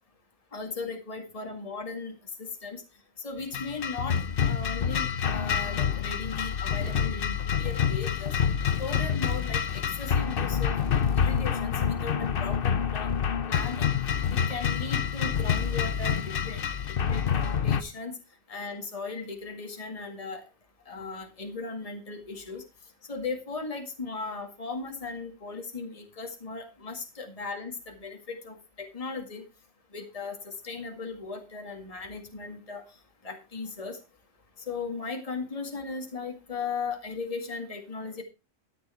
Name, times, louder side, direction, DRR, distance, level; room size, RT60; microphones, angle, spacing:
voice 1, 0.5-2.8 3.2-4.2 4.4-8.4 8.8-10.7 11.1-13.1 13.5-13.9 14.3-16.6 17.1-17.3 17.6-18.2 18.5-20.4 20.9-22.6 23.1-29.4 29.9-32.8 33.2-34.0 34.7-38.2, left 4 dB, 25° left, 4 dB, 2.0 m, -37 dB
sound 1, 3.5-17.8, left 7 dB, 50° left, 0.9 m, -27 dB
13.0 x 8.3 x 4.4 m, 0.28 s
omnidirectional pair, 1.3 m